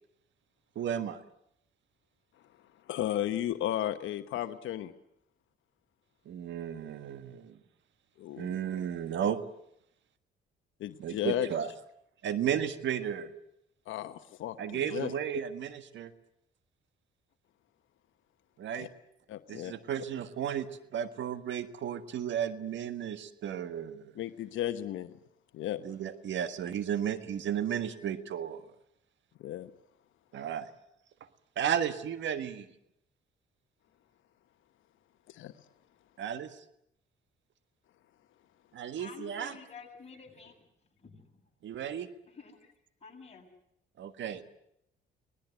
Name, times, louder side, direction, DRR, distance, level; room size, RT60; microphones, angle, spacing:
voice 1, 0.7-1.2 6.2-7.6 8.4-9.4 11.0-11.7 12.2-13.3 14.6-16.1 18.6-18.9 19.5-24.1 25.8-28.6 30.3-30.7 31.6-32.7 36.2-36.6 38.7-39.5 41.6-42.1 44.0-44.4, right 9 dB, 70° right, 11 dB, 1.6 m, -34 dB
voice 2, 2.9-4.9 8.2-8.5 10.8-11.5 13.9-15.1 18.7-18.9 19.3-19.7 24.2-25.2 25.5-25.8 29.4-29.7 35.3-35.5, left 12 dB, 80° left, 10 dB, 1.0 m, -34 dB
voice 3, 39.0-40.6 40.9-41.4 42.3-42.7 43.0-43.5, left 5 dB, 30° left, 0 dB, 7.7 m, -50 dB
25.0 x 19.5 x 8.2 m, 0.75 s
cardioid pair, 90°, 20 cm